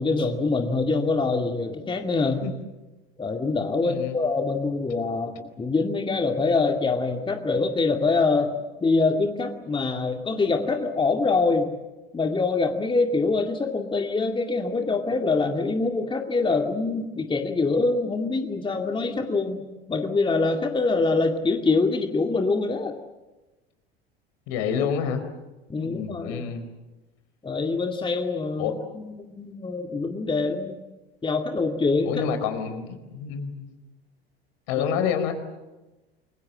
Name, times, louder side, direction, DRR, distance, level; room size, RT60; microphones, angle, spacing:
voice 1, 0.0-2.5 3.2-11.7 12.1-22.9 25.7-26.5 27.4-28.7 29.3-30.8 31.2-32.1 34.8-34.9, left 3 dB, 15° left, 4 dB, 2.2 m, -24 dB
voice 2, 3.8-4.2 24.5-25.2 25.8-26.7 28.6-28.7 32.0-33.7 34.7-35.3, left 7 dB, 55° left, 8 dB, 4.5 m, -28 dB
29.0 x 23.0 x 7.7 m, 1.1 s
figure-of-eight pair, 75°, 30 cm